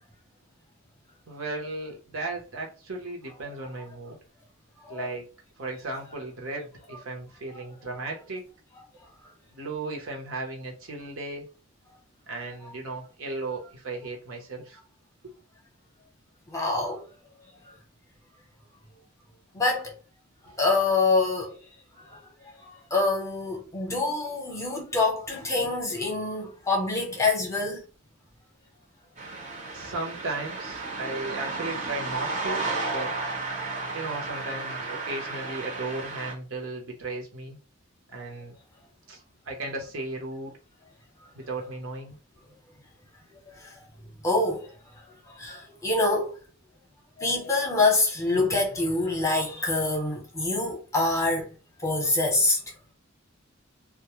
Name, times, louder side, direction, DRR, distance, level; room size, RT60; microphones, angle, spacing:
voice 1, 1.3-4.2 4.9-5.3 5.6-8.4 9.5-11.5 12.3-14.8 20.5-20.6 29.7-33.1 33.9-37.6 38.1-38.5 39.1-39.2 39.5-40.5 41.3-42.2, right 2 dB, 70° right, 0.8 m, -35 dB
voice 2, 16.5-17.0 19.5-19.9 20.6-21.5 22.6-27.8 44.2-44.7 45.4-46.3 47.2-51.5 51.8-52.6, left 3 dB, 15° left, 0.7 m, -25 dB
sound 1, 29.2-36.3, right 3 dB, 35° right, 0.6 m, -33 dB
2.2 x 2.0 x 2.9 m
head